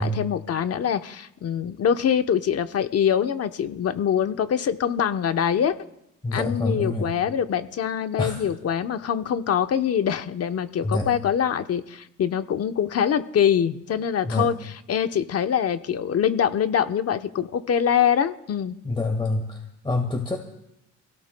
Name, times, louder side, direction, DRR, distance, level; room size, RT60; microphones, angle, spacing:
voice 1, 0.0-5.7 6.3-14.5 14.9-18.8, left 8 dB, 55° left, 9 dB, 0.9 m, -24 dB
voice 2, 6.2-7.2 8.2-8.4 10.8-11.1 14.2-14.5 18.8-20.5, left 2 dB, 15° left, 3 dB, 1.7 m, -26 dB
26.0 x 17.0 x 2.2 m, 0.82 s
cardioid pair, 90°, 30 cm